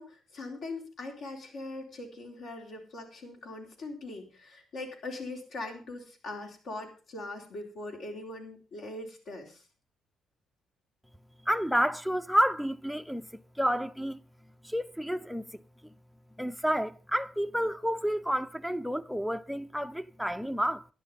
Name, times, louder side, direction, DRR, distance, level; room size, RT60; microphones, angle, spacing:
voice 1, 0.0-9.6, left 2 dB, 70° left, 3.9 m, -41 dB
voice 2, 11.5-14.2 14.6-15.9 16.4-20.9, equal, ahead, 0.5 m, -30 dB
11.5 x 10.5 x 5.3 m
cardioid pair, 90°, 0 cm